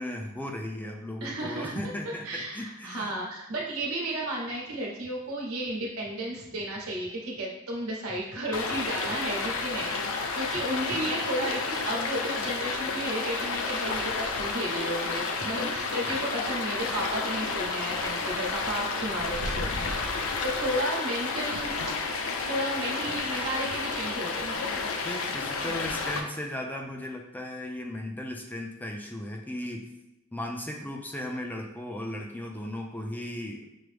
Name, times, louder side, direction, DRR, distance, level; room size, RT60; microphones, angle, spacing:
voice 1, 0.0-3.1 25.0-29.9 30.3-33.7, left 1 dB, 10° left, 1 dB, 0.3 m, -36 dB
voice 2, 1.2-1.8 2.2-21.9 22.4-24.7, right 1 dB, 90° right, -2 dB, 1.1 m, -33 dB
Stream, 8.5-26.2, left 4 dB, 70° left, 0.5 m, -31 dB
6.0 x 2.0 x 3.2 m, 0.96 s
head